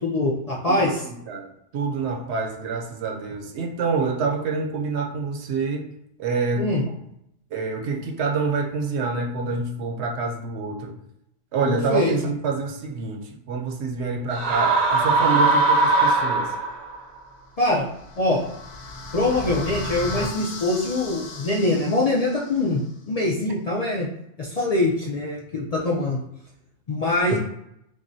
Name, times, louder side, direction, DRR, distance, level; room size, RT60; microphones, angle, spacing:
voice 1, 0.0-1.0 6.6-6.8 11.6-12.1 17.6-17.8 18.2-18.4 19.1-22.8 23.1-24.1 24.4-26.2 26.9-27.4, left 2 dB, 45° left, -4 dB, 0.5 m, -23 dB
voice 2, 0.7-5.9 6.2-6.7 7.5-10.9 11.5-16.5 27.3-27.4, right 4 dB, 70° right, 2 dB, 0.9 m, -27 dB
sound 1, 14.3-17.0, right 3 dB, 45° right, 0.6 m, -20 dB
sound 2, 17.6-22.7, left 2 dB, 75° left, 1.1 m, -35 dB
6.0 x 2.1 x 2.6 m, 0.79 s
omnidirectional pair, 1.2 m